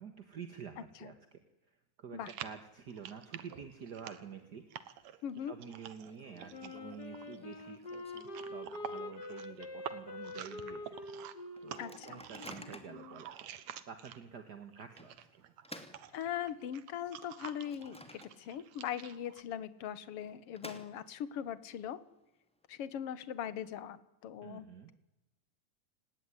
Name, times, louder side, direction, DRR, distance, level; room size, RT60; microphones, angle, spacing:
voice 1, 0.0-4.6 5.4-7.8 8.4-11.0 11.6-13.5 13.8-15.1 24.4-24.9, right 7 dB, 45° right, 8 dB, 1.5 m, -49 dB
sound 1, 2.2-14.4 14.7-19.4, right 10 dB, 65° right, 2.3 m, -49 dB
Microwave oven, 4.9-5.3 5.6-5.7 6.0-9.1 9.5-9.6 9.9-10.2 10.7-10.8 11.6-13.1 13.7-13.8 15.0-16.8 17.2-18.7 19.0-19.1 20.0-21.4, equal, ahead, 2.0 m, -53 dB
voice 2, 5.2-5.5 11.8-12.2 16.1-22.0 22.7-24.9, left 9 dB, 55° left, 15 dB, 2.0 m, -40 dB
Wind instrument woodwind instrument, 6.5-13.3, left 2 dB, 30° left, 3.1 m, -45 dB
30.0 x 19.5 x 10.0 m, 1.0 s
omnidirectional pair, 3.7 m